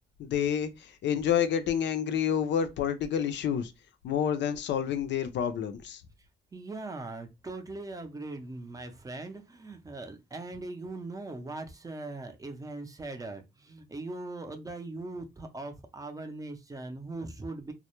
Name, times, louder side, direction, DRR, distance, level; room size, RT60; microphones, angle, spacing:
voice 1, 0.2-3.7 4.0-6.0, left 8 dB, 65° left, 0.5 m, -29 dB
voice 2, 6.5-17.7, right 2 dB, 15° right, 0.5 m, -40 dB
2.2 x 2.0 x 2.9 m
cardioid pair, 90°, 20 cm